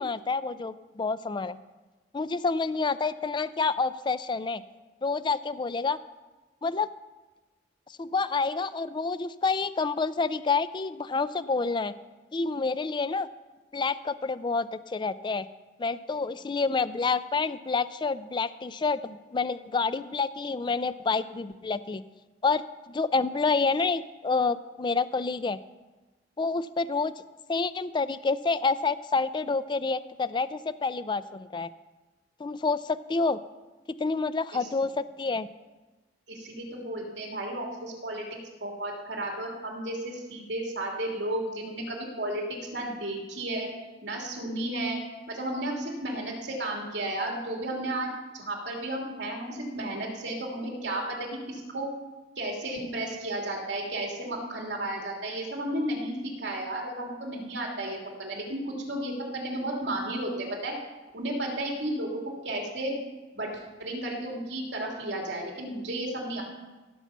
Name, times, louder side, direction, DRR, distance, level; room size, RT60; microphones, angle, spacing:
voice 1, 0.0-1.6 2.1-4.6 5.0-6.0 6.6-6.9 8.0-11.9 12.3-13.3 13.7-15.5 15.8-22.0 22.4-25.6 26.4-27.1 27.5-31.7 32.4-33.4 33.9-35.5, left 4 dB, 25° left, 14 dB, 0.4 m, -28 dB
voice 2, 36.3-38.2 38.6-42.4 42.7-43.7 44.0-45.0 45.3-51.9 52.4-60.8 61.1-62.9 63.3-63.5 63.8-66.4, right 1 dB, 75° right, -1 dB, 2.9 m, -33 dB
16.5 x 5.6 x 7.2 m, 1.2 s
head